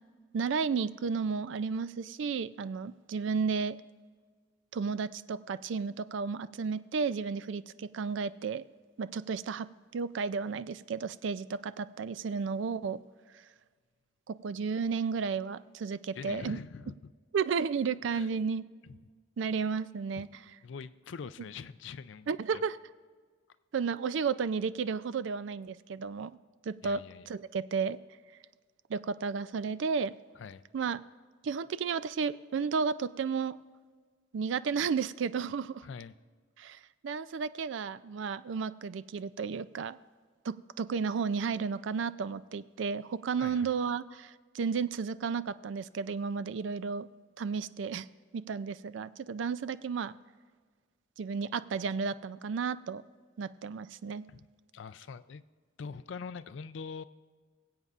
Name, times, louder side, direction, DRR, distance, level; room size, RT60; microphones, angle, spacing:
voice 1, 0.3-3.8 4.7-8.6 9.0-9.7 9.9-13.0 14.3-16.6 17.3-18.6 19.4-20.3 22.3-22.8 23.7-26.3 26.6-27.0 27.3-28.0 28.9-30.1 30.7-31.0 31.4-33.6 34.3-35.9 36.6-40.0 40.4-47.1 47.4-48.1 48.3-50.1 51.2-53.0 53.4-54.2, right 5 dB, 70° right, 14 dB, 0.4 m, -33 dB
voice 2, 16.1-17.1 18.1-18.3 20.2-20.3 20.6-22.6 26.8-27.3 30.4-30.6 35.8-36.1 43.4-43.7 54.3-54.4 54.7-55.4 55.8-57.0, left 5 dB, 70° left, 13 dB, 0.4 m, -43 dB
23.5 x 8.0 x 2.5 m, 1.5 s
head